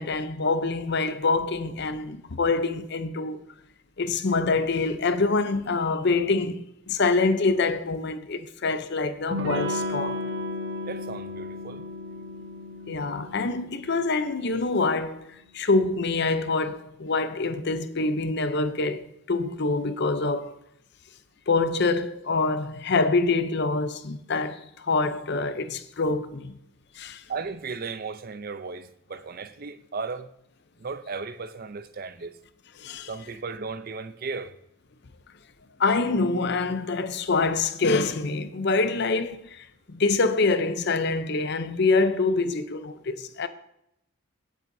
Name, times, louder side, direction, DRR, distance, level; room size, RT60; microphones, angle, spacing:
voice 1, 0.0-3.4 4.0-10.2 12.9-20.5 21.5-26.6 27.0-27.2 32.8-33.1 35.8-43.5, left 3 dB, 50° left, 0.6 m, -25 dB
Electric guitar / Strum, 9.3-14.7, left 1 dB, 60° right, 1.2 m, -34 dB
voice 2, 10.9-11.8 27.3-30.3 30.8-32.4 33.1-34.5, right 4 dB, 45° right, 0.5 m, -35 dB
17.5 x 7.5 x 2.7 m
head